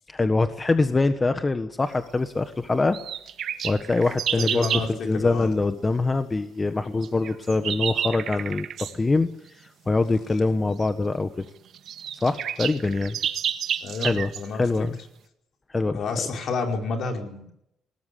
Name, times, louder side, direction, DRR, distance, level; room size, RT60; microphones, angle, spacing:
voice 1, 0.1-3.0 3.6-11.4 12.2-13.2 14.0-15.0 15.7-16.2, left 3 dB, 25° left, 9 dB, 1.4 m, -24 dB
sound 1, 2.9-4.9 7.0-9.0 10.8-10.9 11.5-11.6 11.7-14.5, right 9 dB, 70° right, 1.7 m, -30 dB
voice 2, 4.4-4.9 5.1-5.5 13.8-14.6 15.9-17.5, left 4 dB, 65° left, 3 dB, 5.1 m, -29 dB
20.5 x 19.0 x 8.5 m, 0.79 s
cardioid pair, 90°, 0 cm